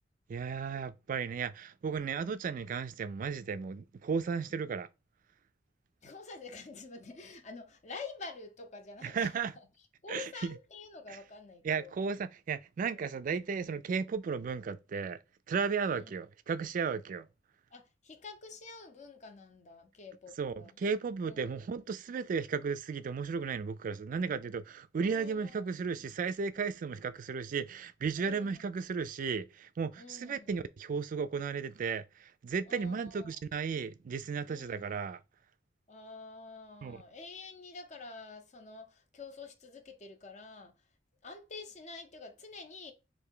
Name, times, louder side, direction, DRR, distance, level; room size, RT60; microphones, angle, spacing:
voice 1, 0.3-4.9 9.0-9.5 10.1-10.5 11.1-11.2 11.6-15.2 15.5-17.3 20.4-35.2 36.8-37.0, right 5 dB, 45° right, 0.3 m, -34 dB
voice 2, 6.0-9.7 10.0-12.0 12.9-13.1 15.9-16.1 17.7-20.8 21.2-21.5 25.0-25.6 28.2-28.6 30.0-30.5 32.7-33.4 34.5-34.9 35.9-40.7 41.2-42.9, left 4 dB, 40° left, 0.6 m, -48 dB
3.2 x 2.6 x 3.7 m
head